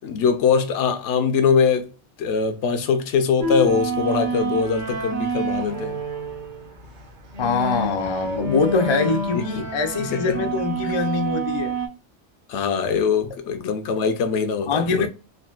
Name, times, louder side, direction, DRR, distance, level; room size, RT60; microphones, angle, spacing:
voice 1, 0.0-1.9 2.2-6.0 9.3-9.4 10.1-10.4 12.5-15.1, left 6 dB, 80° left, 0.9 m, -22 dB
sound 1, 3.4-11.9, right 2 dB, 50° right, 0.8 m, -28 dB
voice 2, 7.4-11.7 14.7-15.1, left 4 dB, 50° left, 0.3 m, -23 dB
3.7 x 2.2 x 2.3 m
omnidirectional pair, 1.2 m